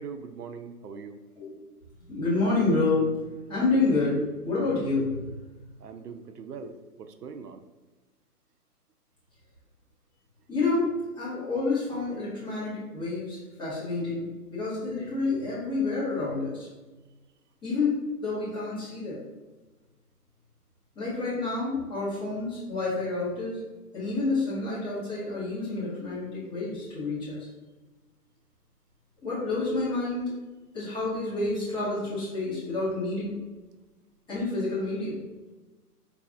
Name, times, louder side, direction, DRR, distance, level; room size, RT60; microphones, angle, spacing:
voice 1, 0.0-1.2 5.8-7.6, right 6 dB, 90° right, 8 dB, 0.6 m, -41 dB
voice 2, 2.1-3.1 3.5-5.2 10.5-16.6 17.6-19.2 20.9-23.6 23.9-27.5 29.2-30.3 30.7-33.3 34.3-35.2, left 3 dB, 10° left, -9 dB, 1.3 m, -28 dB
4.8 x 3.4 x 2.5 m, 1.2 s
figure-of-eight pair, 135°, 46 cm